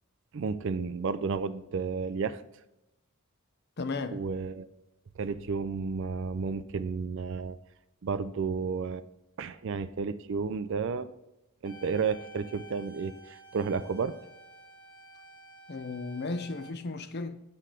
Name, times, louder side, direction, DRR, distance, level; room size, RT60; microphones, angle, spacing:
voice 1, 0.3-2.4 4.1-4.7 5.2-7.6 8.0-9.0 9.4-11.1 11.6-14.2, right 5 dB, 55° right, 0.4 m, -32 dB
voice 2, 3.8-4.2 15.7-17.4, left 3 dB, 45° left, 0.6 m, -35 dB
sound 1, 11.6-16.7, right 2 dB, 20° left, 1.2 m, -51 dB
7.6 x 6.6 x 3.8 m
head